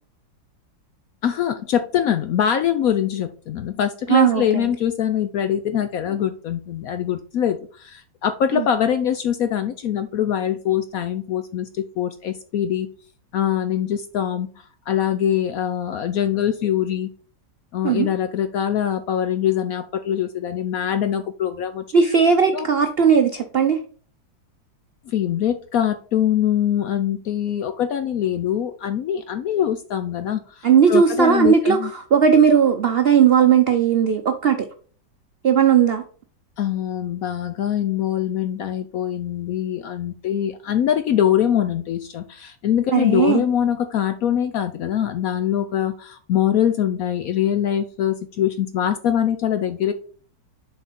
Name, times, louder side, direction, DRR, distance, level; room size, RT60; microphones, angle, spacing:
voice 1, 1.2-12.9 13.3-17.1 17.7-21.8 22.5-22.7 25.1-31.9 36.6-49.9, left 10 dB, 70° left, 9 dB, 0.8 m, -23 dB
voice 2, 4.1-4.7 8.5-8.7 17.8-18.1 21.9-23.8 30.6-34.6 35.4-36.0 42.9-43.4, right 7 dB, 85° right, 6 dB, 0.5 m, -17 dB
7.2 x 4.6 x 4.2 m, 0.41 s
omnidirectional pair, 2.0 m